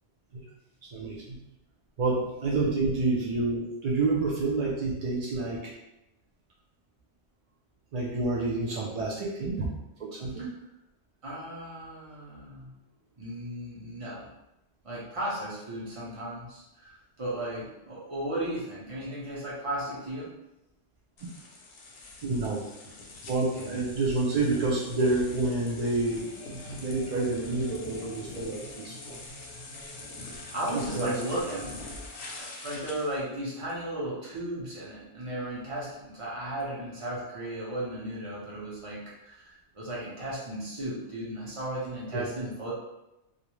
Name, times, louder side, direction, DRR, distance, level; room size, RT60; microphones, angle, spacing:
voice 1, 0.8-1.4 2.0-5.7 7.9-9.7 10.0-10.5 22.2-22.6 23.3-26.2 26.5-29.2 30.7-31.2 42.1-42.3, right 3 dB, 70° right, -4 dB, 0.3 m, -28 dB
voice 2, 11.2-12.7 13.2-14.3 14.8-20.3 23.5-23.7 30.3-31.8 32.4-42.7, right 1 dB, 35° right, -7 dB, 0.7 m, -35 dB
sound 1, 21.2-33.2, left 2 dB, 65° left, 0.7 m, -44 dB
sound 2, 26.0-32.4, left 2 dB, 90° left, 0.9 m, -49 dB
2.4 x 2.0 x 3.0 m, 0.92 s
omnidirectional pair, 1.2 m